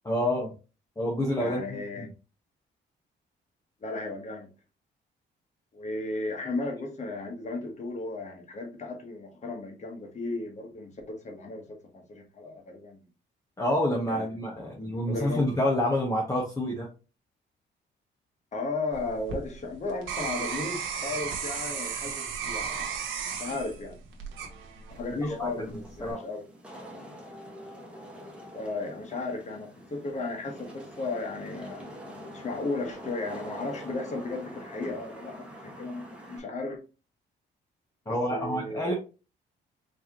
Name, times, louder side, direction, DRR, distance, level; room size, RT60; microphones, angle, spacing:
voice 1, 0.0-0.5 1.0-2.1 13.6-16.9 25.3-26.2 38.1-38.9, left 1 dB, 15° left, 1.1 m, -28 dB
voice 2, 1.4-2.1 3.8-4.5 5.7-13.1 14.1-14.8 15.1-15.4 18.5-22.9 23.4-24.0 24.9-26.4 28.5-31.8 32.3-35.5 35.8-36.8 38.1-38.9, left 3 dB, 35° left, 1.2 m, -35 dB
sound 1, 18.9-25.1 25.7-26.1, right 6 dB, 80° right, 1.2 m, -34 dB
Wind / Rain, 24.9-36.4, equal, 5° right, 1.4 m, -45 dB
4.6 x 2.9 x 2.9 m
cardioid pair, 90°, 20 cm